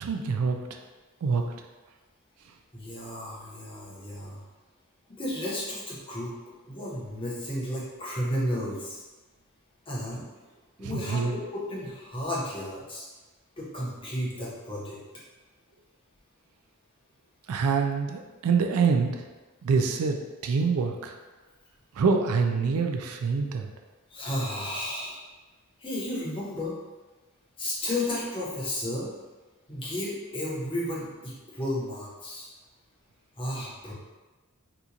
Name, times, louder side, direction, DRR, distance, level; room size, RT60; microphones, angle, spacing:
voice 1, 0.0-0.6 1.2-1.4 10.9-11.3 17.5-19.2 19.6-20.2 20.4-21.1 22.0-23.7, right 5 dB, 80° right, 4 dB, 0.4 m, -25 dB
voice 2, 2.7-4.4 5.2-6.3 6.6-9.0 9.9-10.3 10.8-13.0 13.6-15.0 24.1-25.2 25.8-26.8 27.6-29.1 29.7-32.5 33.4-33.9, left 1 dB, 25° left, -6 dB, 0.9 m, -33 dB
2.9 x 2.4 x 3.8 m, 1.2 s
head